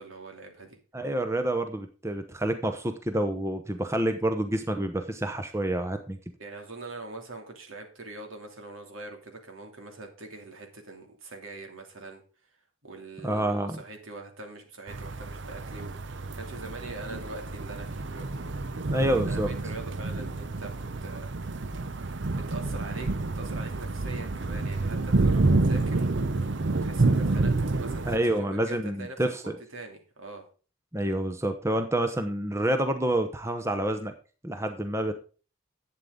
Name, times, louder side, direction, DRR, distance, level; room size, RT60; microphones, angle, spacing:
voice 1, 0.0-0.8 6.4-12.2 12.8-18.3 18.9-21.3 22.3-26.1 26.8-29.2 29.4-30.4, right 3 dB, 75° right, 3 dB, 2.8 m, -43 dB
voice 2, 0.9-6.2 13.2-13.8 18.9-19.5 28.1-29.6 30.9-34.1 34.4-35.1, right 1 dB, 15° right, 7 dB, 0.9 m, -28 dB
sound 1, 14.9-28.2, right 3 dB, 60° right, 0.6 m, -28 dB
11.5 x 8.6 x 3.8 m, 0.36 s
head